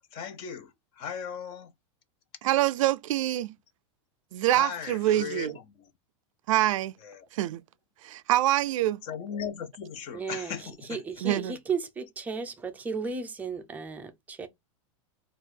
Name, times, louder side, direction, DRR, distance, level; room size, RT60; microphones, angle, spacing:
voice 1, 0.1-0.7 1.0-1.7 4.5-5.5 7.0-7.2 9.1-11.0, left 7 dB, 35° left, 0.7 m, -37 dB
voice 2, 2.4-3.5 4.3-5.6 6.5-6.9 7.3-7.6 8.0-9.0 11.2-11.6, right 14 dB, 90° right, 0.4 m, -25 dB
voice 3, 10.1-14.5, right 5 dB, 10° right, 0.5 m, -35 dB
4.5 x 2.4 x 4.4 m
supercardioid pair, 165°, 16 cm